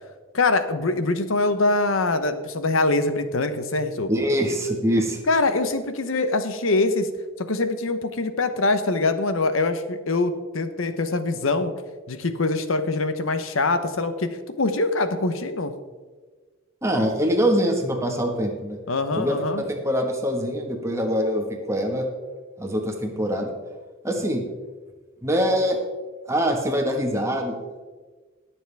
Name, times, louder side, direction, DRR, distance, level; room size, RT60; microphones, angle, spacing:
voice 1, 0.3-4.1 5.3-7.1 7.4-11.7 12.1-15.7 18.9-19.6, left 3 dB, 80° left, 10 dB, 1.0 m, -23 dB
voice 2, 4.1-5.2 16.8-18.8 19.1-22.1 22.6-23.5 24.0-24.4 25.2-25.8 26.3-27.5, equal, 15° right, 2 dB, 1.5 m, -24 dB
19.5 x 7.2 x 3.5 m, 1.4 s
head